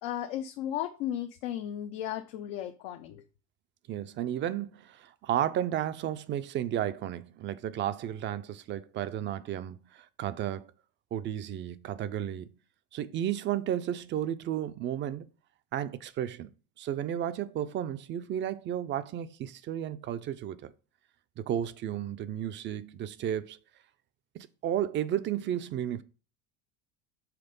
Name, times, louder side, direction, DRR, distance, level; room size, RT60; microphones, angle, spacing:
voice 1, 0.0-3.2, left 11 dB, 80° left, 0.7 m, -35 dB
voice 2, 3.9-10.7 11.1-12.5 12.9-15.3 15.7-16.5 16.8-20.7 21.4-23.6 24.3-26.0, right 10 dB, 40° right, 0.5 m, -33 dB
5.9 x 3.3 x 5.3 m
supercardioid pair, 110°, 30 cm